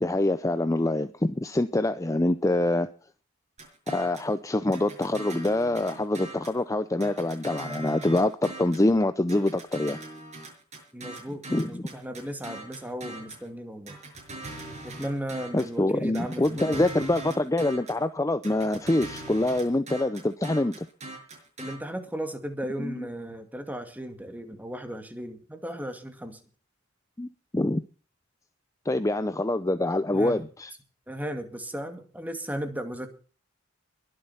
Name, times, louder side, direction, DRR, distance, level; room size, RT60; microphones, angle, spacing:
voice 1, 0.0-2.9 3.9-10.0 11.5-11.8 15.5-20.9 22.8-23.1 27.2-27.3 27.5-27.8 28.9-30.7, left 1 dB, 15° left, 12 dB, 0.6 m, -25 dB
sound 1, 3.6-4.3 4.7-6.6 7.0-8.9 9.3-13.5 13.9-15.8 16.1-18.0 18.4-21.7, right 2 dB, 35° right, 6.4 m, -41 dB
voice 2, 10.9-14.0 14.8-16.9 21.6-26.4 30.1-30.4 31.1-33.1, equal, 10° right, 7 dB, 2.2 m, -36 dB
22.0 x 7.9 x 5.6 m, 0.39 s
head